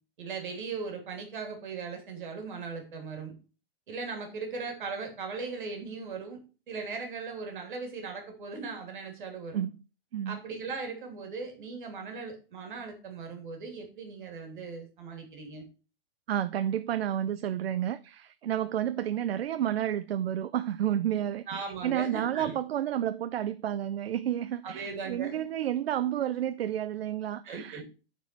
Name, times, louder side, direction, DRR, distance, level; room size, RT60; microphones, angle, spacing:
voice 1, 0.2-3.3 3.9-6.4 6.7-9.6 10.3-15.6 21.5-22.6 24.6-25.4 27.4-27.8, right 4 dB, 55° right, 2.9 m, -38 dB
voice 2, 16.3-27.8, right 11 dB, 85° right, 0.6 m, -31 dB
9.3 x 4.6 x 4.5 m
hypercardioid pair, 175°, 30 cm